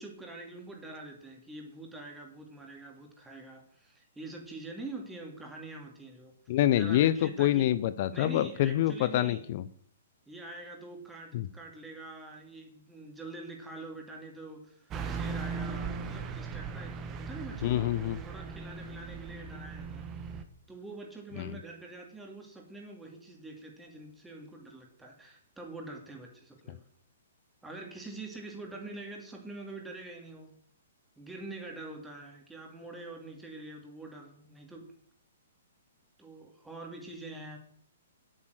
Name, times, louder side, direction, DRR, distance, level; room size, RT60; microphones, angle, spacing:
voice 1, 0.0-6.3 6.7-7.7 8.1-9.5 10.3-17.9 18.2-20.0 20.7-26.9 27.6-30.5 31.2-34.9 36.2-37.6, right 2 dB, 5° right, 0 dB, 2.9 m, -45 dB
voice 2, 6.5-9.6 11.3-11.5 17.6-18.2 21.4-21.5, left 13 dB, 40° left, 15 dB, 0.6 m, -26 dB
Car passing by / Truck, 14.9-20.4, right 5 dB, 20° right, 1.2 m, -38 dB
10.5 x 8.9 x 6.5 m, 0.63 s
figure-of-eight pair, 115°, 0 cm